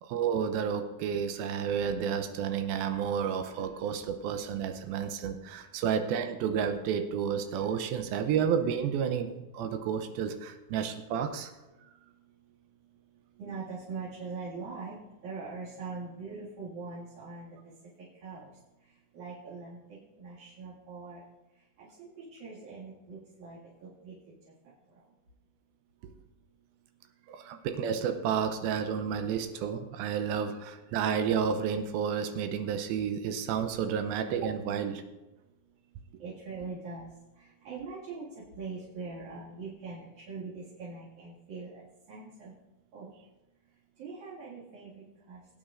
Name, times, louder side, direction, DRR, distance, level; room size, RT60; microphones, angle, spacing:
voice 1, 0.0-9.3 9.5-11.5 27.3-35.0, right 7 dB, 85° right, 7 dB, 2.6 m, -31 dB
voice 2, 13.4-15.0 15.2-17.6 18.2-18.5 19.1-21.2 21.8-24.1 36.2-37.1 37.4-38.3 38.5-41.7 42.1-42.5 42.9-43.1 44.0-45.4, right 4 dB, 60° right, -9 dB, 3.4 m, -42 dB
20.5 x 8.8 x 2.6 m, 1.0 s
omnidirectional pair, 4.3 m